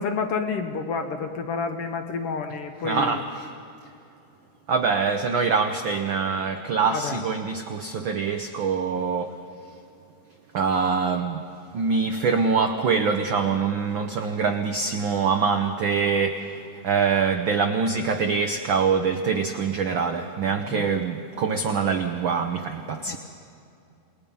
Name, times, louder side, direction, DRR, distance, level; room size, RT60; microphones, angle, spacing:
voice 1, 0.0-3.3 6.8-7.2 20.5-20.9 23.1-23.2, left 5 dB, 65° left, 6 dB, 1.6 m, -29 dB
voice 2, 2.8-3.5 4.7-9.3 10.5-11.4 11.7-16.6 16.8-23.2, right 5 dB, 85° right, 7 dB, 1.0 m, -24 dB
28.5 x 20.0 x 5.4 m, 2.6 s
omnidirectional pair, 3.4 m